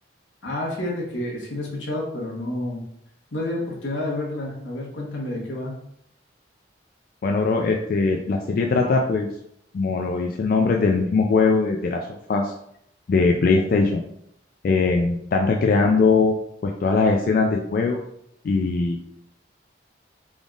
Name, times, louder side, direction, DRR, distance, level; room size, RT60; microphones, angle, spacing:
voice 1, 0.4-2.8 3.3-5.8, left 1 dB, 85° left, -3 dB, 1.2 m, -29 dB
voice 2, 7.2-9.3 9.7-12.5 13.1-14.0 14.6-16.3 16.6-18.0 18.4-19.0, left 4 dB, 50° left, 1 dB, 0.3 m, -21 dB
3.8 x 3.5 x 2.4 m, 0.75 s
head